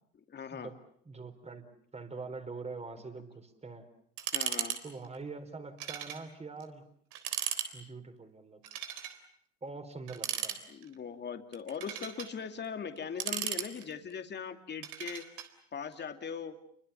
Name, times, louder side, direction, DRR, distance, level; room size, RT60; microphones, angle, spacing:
voice 1, 0.3-0.7 4.3-4.8 10.7-15.2 15.7-16.6, left 6 dB, 30° left, 7 dB, 2.6 m, -40 dB
voice 2, 1.0-1.7 1.9-3.9 4.8-6.8 7.7-8.6 9.6-10.6, right 4 dB, 20° right, 8 dB, 4.2 m, -44 dB
sound 1, 4.2-4.8 5.0-5.2 5.8-6.2 6.6-6.7 7.1-7.7 8.6-9.2 10.1-10.9 11.5-12.3 13.0-14.1 14.8-15.5, right 11 dB, 65° right, 3.9 m, -36 dB
29.5 x 24.0 x 7.0 m, 0.65 s
hypercardioid pair, 85°, 35 cm